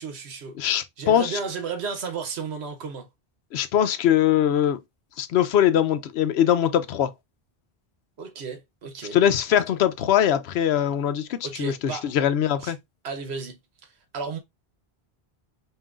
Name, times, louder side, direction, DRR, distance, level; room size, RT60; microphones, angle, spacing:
voice 1, 0.0-0.6 1.0-3.1 8.2-9.2 11.4-12.1 12.6-12.7 13.0-14.4, right 5 dB, 80° right, 1.1 m, -33 dB
voice 2, 0.6-1.4 3.5-4.8 5.2-7.1 9.1-12.8, left 10 dB, 80° left, 0.8 m, -22 dB
5.5 x 2.6 x 2.4 m
omnidirectional pair, 1.1 m